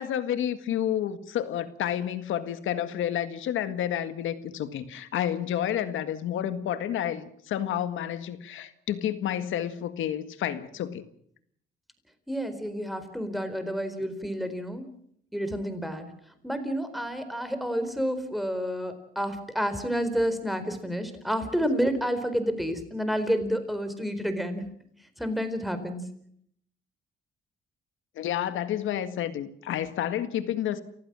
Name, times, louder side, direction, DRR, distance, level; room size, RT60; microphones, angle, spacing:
voice 1, 0.0-11.0 28.2-30.8, left 10 dB, 80° left, 11 dB, 1.8 m, -30 dB
voice 2, 12.3-14.8 15.3-16.1 16.4-24.6 25.2-26.0, equal, ahead, 9 dB, 4.2 m, -29 dB
29.0 x 15.5 x 7.5 m, 0.68 s
cardioid pair, 90°, 20 cm